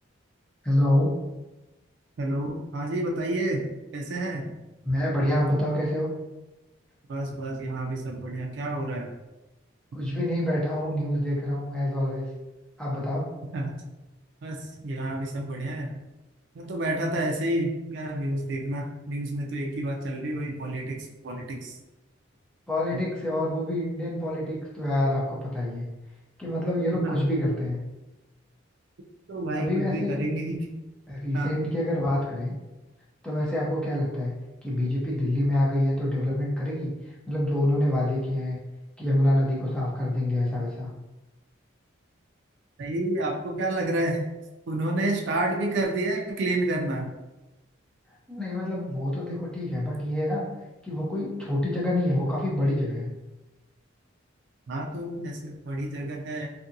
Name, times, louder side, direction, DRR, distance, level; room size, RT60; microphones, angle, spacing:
voice 1, 0.6-1.2 4.8-6.1 9.9-12.3 12.8-13.3 22.7-25.8 26.4-27.8 29.6-30.2 31.1-32.5 33.2-34.4 34.6-36.9 37.3-38.6 39.0-40.9 48.3-50.4 50.8-53.1, left 1 dB, 5° left, -6 dB, 0.5 m, -26 dB
voice 2, 2.2-4.5 7.1-9.1 13.5-13.8 14.4-15.9 16.6-21.8 22.9-23.0 27.0-27.2 29.3-30.7 31.3-31.5 42.8-44.2 44.7-47.1 54.7-56.5, right 1 dB, 55° right, 1 dB, 0.3 m, -29 dB
2.6 x 2.5 x 2.6 m, 1.1 s
head